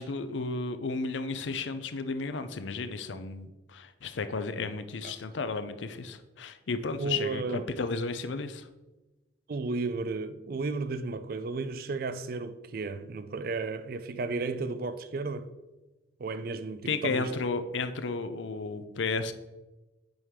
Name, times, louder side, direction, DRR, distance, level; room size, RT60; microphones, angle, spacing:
voice 1, 0.0-8.7 16.9-19.3, left 4 dB, 80° left, 0.5 m, -33 dB
voice 2, 7.0-7.7 9.5-15.5 16.2-17.3, right 3 dB, 50° right, 0.4 m, -33 dB
7.8 x 4.8 x 3.6 m
head